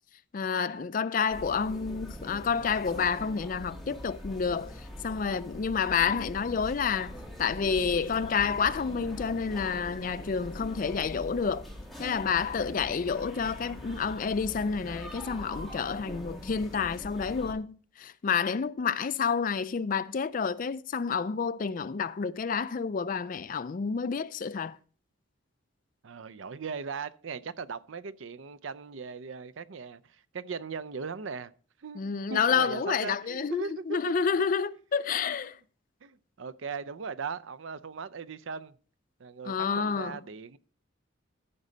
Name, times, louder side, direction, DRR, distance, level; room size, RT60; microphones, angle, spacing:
voice 1, 0.3-4.7 5.0-11.6 12.0-24.8 32.0-35.6 39.4-40.2, left 6 dB, 40° left, 0.4 m, -29 dB
sound 1, 1.3-17.5, left 1 dB, ahead, 1.9 m, -43 dB
voice 2, 26.0-31.5 31.8-34.5 36.0-38.7 39.2-40.6, right 5 dB, 70° right, 0.5 m, -39 dB
14.0 x 5.4 x 3.9 m
head